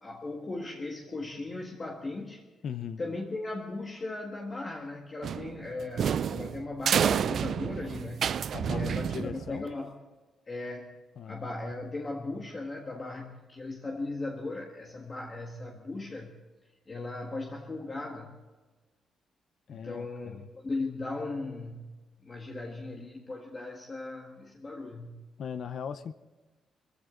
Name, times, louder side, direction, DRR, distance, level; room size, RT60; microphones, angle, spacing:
voice 1, 0.0-2.4 3.0-8.3 8.7-9.9 10.5-11.0 11.3-16.4 16.9-18.3 19.7-21.9 22.2-25.2, left 2 dB, 25° left, 1.7 m, -37 dB
voice 2, 2.6-3.0 8.5-9.7 11.2-11.4 19.7-20.5 25.4-26.1, left 7 dB, 55° left, 0.7 m, -39 dB
sound 1, 5.2-9.7, right 8 dB, 55° right, 0.5 m, -29 dB
24.0 x 15.5 x 3.8 m
cardioid pair, 150°, 0 cm